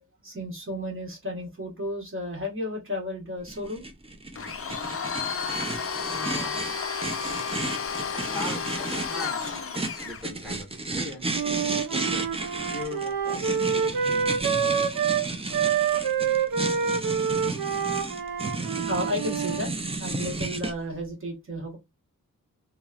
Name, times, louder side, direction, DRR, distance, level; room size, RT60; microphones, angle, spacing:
voice 1, 0.2-3.8 7.0-7.1 15.9-16.0 17.7-17.9 18.9-21.8, left 1 dB, 35° right, 1.1 m, -33 dB
sound 1, 3.5-20.7, right 3 dB, 15° right, 0.4 m, -33 dB
Domestic sounds home sounds, 4.4-10.2, left 6 dB, 40° left, 0.4 m, -32 dB
voice 2, 6.0-6.6 8.1-11.6 11.9-12.3 12.7-14.9 15.4-15.6, left 2 dB, ahead, 1.0 m, -40 dB
Wind instrument woodwind instrument, 11.3-19.6, right 7 dB, 75° right, 0.5 m, -27 dB
2.8 x 2.0 x 2.3 m
wide cardioid pair, 90°, 35 cm